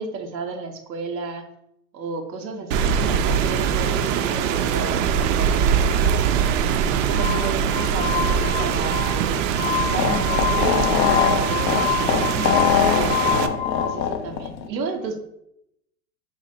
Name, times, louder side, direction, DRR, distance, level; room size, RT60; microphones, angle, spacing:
voice 1, 0.0-1.5 1.9-6.3 6.9-9.3 9.8-13.2 13.8-15.2, right 4 dB, 85° right, 3 dB, 0.8 m, -33 dB
Rain, 2.7-13.5, right 7 dB, 55° right, 0.5 m, -22 dB
Glass, 7.1-13.8, left 9 dB, 15° left, 0.3 m, -28 dB
sound 1, 9.6-14.7, left 8 dB, 85° left, 0.6 m, -23 dB
3.9 x 2.6 x 3.9 m, 0.81 s
hypercardioid pair, 100°, 49 cm